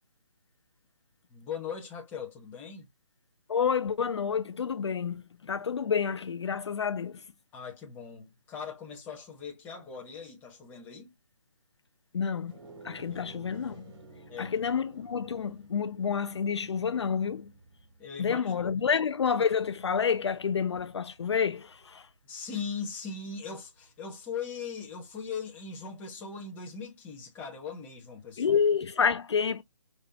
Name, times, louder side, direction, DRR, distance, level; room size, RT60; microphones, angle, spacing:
voice 1, 1.3-2.9 7.5-11.1 13.1-13.2 14.3-14.5 18.0-18.5 22.2-28.5, left 6 dB, 10° left, 1.1 m, -40 dB
voice 2, 3.5-7.2 12.1-12.5 12.8-13.9 14.4-17.5 18.2-22.1 28.4-29.6, left 6 dB, 60° left, 0.5 m, -29 dB
sound 1, 12.4-22.0, right 2 dB, 50° right, 3.8 m, -53 dB
5.5 x 2.9 x 2.8 m
hypercardioid pair, 160°, 16 cm